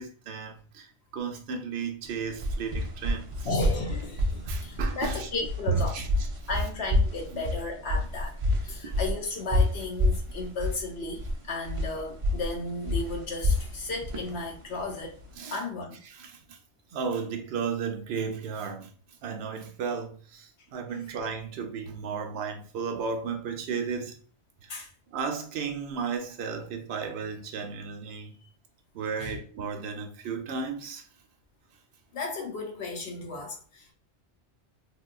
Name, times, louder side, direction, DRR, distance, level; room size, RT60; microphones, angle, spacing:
voice 1, 0.0-3.5 4.5-5.3 5.7-6.3 7.3-7.5 8.7-8.8 15.4-15.6 16.1-16.6 16.9-18.9 19.2-24.2 24.6-24.8 25.1-28.4 28.9-31.0, right 5 dB, 65° right, 0.8 m, -34 dB
sound 1, 2.1-15.3, left 1 dB, 50° right, 0.4 m, -29 dB
voice 2, 3.4-5.9 6.5-8.3 8.6-15.2 15.5-16.0 24.7-24.9 29.2-29.4 32.1-33.9, left 3 dB, 70° left, 0.9 m, -34 dB
3.8 x 2.2 x 2.3 m
omnidirectional pair, 1.2 m